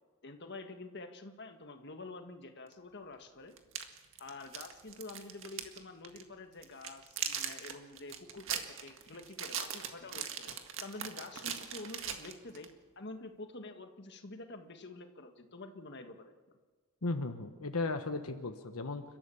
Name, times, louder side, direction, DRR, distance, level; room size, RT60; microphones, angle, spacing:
voice 1, 0.2-3.5 4.2-10.5 10.8-12.7 12.9-16.3, left 2 dB, 50° left, 6 dB, 1.6 m, -48 dB
sound 1, 2.7-2.8 3.6-5.8 6.0-6.2 6.6-12.7, right 8 dB, 60° right, 1.9 m, -40 dB
voice 2, 17.0-19.0, left 3 dB, 80° left, 6 dB, 1.2 m, -36 dB
30.0 x 13.0 x 7.1 m, 1.4 s
head